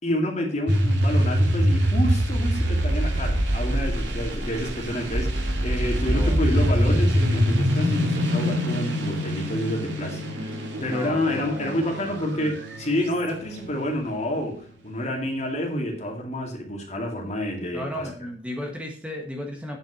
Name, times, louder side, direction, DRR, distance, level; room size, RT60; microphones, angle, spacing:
voice 1, 0.0-18.1, equal, 35° left, 1 dB, 2.4 m, -28 dB
sound 1, 0.7-13.1, equal, 80° right, 2.3 m, -24 dB
voice 2, 6.0-6.7 10.8-12.5 17.7-19.8, left 1 dB, 5° right, 1 dB, 1.5 m, -36 dB
Bowed string instrument, 9.9-15.3 16.4-16.5, equal, 60° right, 3.5 m, -43 dB
9.1 x 5.6 x 6.3 m, 0.42 s
head